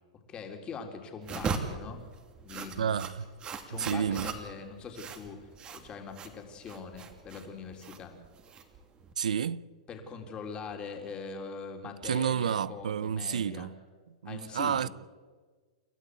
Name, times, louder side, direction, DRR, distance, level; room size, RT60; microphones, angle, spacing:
voice 1, 0.3-2.0 2.4-3.0 3.7-8.1 9.9-13.7 14.2-14.9, left 5 dB, 25° left, 3.8 m, -42 dB
sound 1, 1.2-9.1, right 5 dB, 25° right, 2.6 m, -39 dB
voice 2, 2.8-3.3 3.7-4.3 9.2-9.6 12.0-13.7 14.2-14.9, right 8 dB, 90° right, 0.7 m, -30 dB
29.0 x 13.5 x 8.4 m
hypercardioid pair, 130°, 4 cm